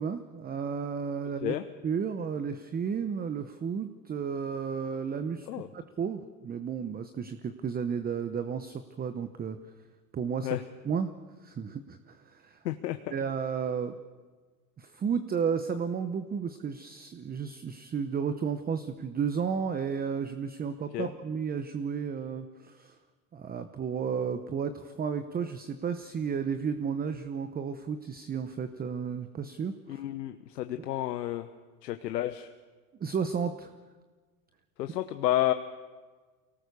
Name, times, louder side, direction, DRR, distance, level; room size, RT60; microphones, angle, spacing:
voice 1, 0.0-1.5 1.8-5.5 5.7-9.6 10.1-10.6 10.8-11.1 11.4-12.6 13.1-14.0 14.8-23.0 23.3-30.0 33.0-33.7, right 6 dB, 20° right, 9 dB, 0.9 m, -33 dB
voice 2, 12.6-13.0 20.9-21.1 29.9-31.5 31.8-32.5 34.8-35.5, left 14 dB, 80° left, 9 dB, 1.1 m, -30 dB
24.5 x 18.5 x 6.9 m, 1.4 s
hypercardioid pair, 105°, 48 cm